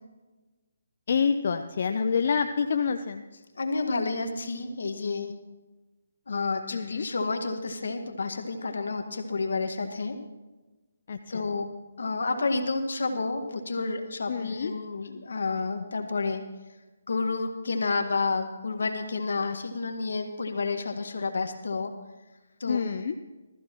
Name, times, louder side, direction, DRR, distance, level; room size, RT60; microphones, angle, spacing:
voice 1, 1.1-3.2 6.7-7.1 11.1-11.4 14.3-14.7 22.7-23.1, left 6 dB, 55° left, 7 dB, 0.7 m, -27 dB
voice 2, 3.6-5.3 6.3-10.2 11.3-11.7 12.0-16.4 17.1-21.9 22.6-22.8, left 3 dB, 75° left, 6 dB, 1.7 m, -30 dB
19.5 x 14.0 x 3.1 m, 1.2 s
hypercardioid pair, 155°, 0 cm